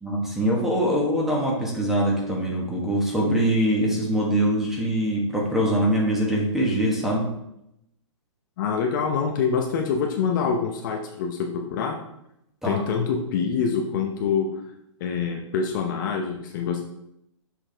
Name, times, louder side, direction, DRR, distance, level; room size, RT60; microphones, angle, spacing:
voice 1, 0.0-7.3 12.6-12.8, right 1 dB, ahead, -3 dB, 1.4 m, -23 dB
voice 2, 8.6-12.0 12.6-14.6 15.0-16.8, left 6 dB, 40° left, 2 dB, 0.8 m, -25 dB
6.4 x 5.8 x 3.4 m, 0.81 s
hypercardioid pair, 150°, 16 cm